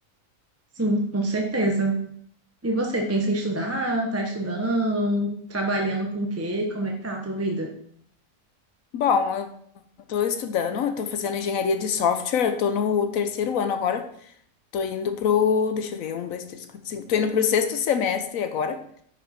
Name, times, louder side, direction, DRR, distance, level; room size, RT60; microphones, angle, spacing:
voice 1, 0.8-2.0 2.6-7.7, right 1 dB, 10° right, 0 dB, 0.9 m, -25 dB
voice 2, 8.9-9.5 10.1-14.0 14.7-18.8, left 7 dB, 85° left, 7 dB, 1.2 m, -24 dB
10.0 x 5.2 x 4.3 m, 0.65 s
omnidirectional pair, 1.4 m